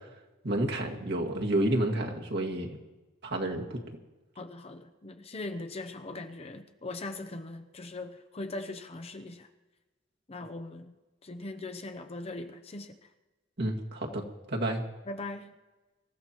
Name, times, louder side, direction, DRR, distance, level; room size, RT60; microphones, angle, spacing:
voice 1, 0.4-2.7 3.2-4.0 13.6-14.8, right 1 dB, 60° right, 1 dB, 1.9 m, -30 dB
voice 2, 4.4-9.5 10.3-11.0 11.2-13.0 15.1-15.6, left 2 dB, 30° left, 7 dB, 0.7 m, -40 dB
26.0 x 14.0 x 3.0 m, 1.1 s
head